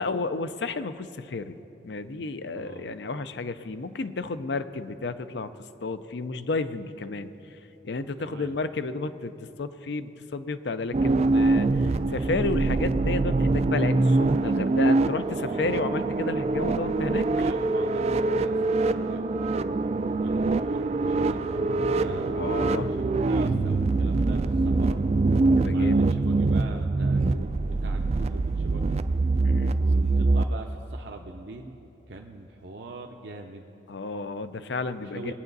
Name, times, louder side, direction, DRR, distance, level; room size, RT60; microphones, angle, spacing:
voice 1, 0.0-1.6 1.8-5.5 5.8-7.3 7.8-17.3 22.3-22.9 25.5-26.1 29.4-29.8 33.9-35.3, left 3 dB, 70° left, 12 dB, 0.5 m, -32 dB
voice 2, 2.5-2.9 8.2-8.6 15.5-16.0 17.3-19.5 20.1-25.0 25.7-29.0 29.8-33.7 35.1-35.3, right 2 dB, 70° right, 2 dB, 0.7 m, -43 dB
sound 1, 10.9-30.4, right 3 dB, 35° right, 0.3 m, -24 dB
20.5 x 8.9 x 4.0 m, 2.9 s
head